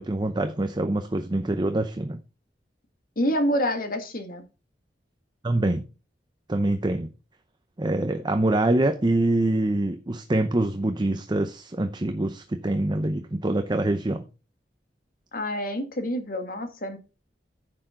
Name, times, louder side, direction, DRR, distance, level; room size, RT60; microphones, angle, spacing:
voice 1, 0.0-2.2 5.4-5.8 6.5-7.1 7.8-14.2, right 1 dB, 25° right, 0.7 m, -25 dB
voice 2, 3.2-4.4 15.3-17.0, equal, 55° left, 1.8 m, -27 dB
9.9 x 6.7 x 3.7 m
head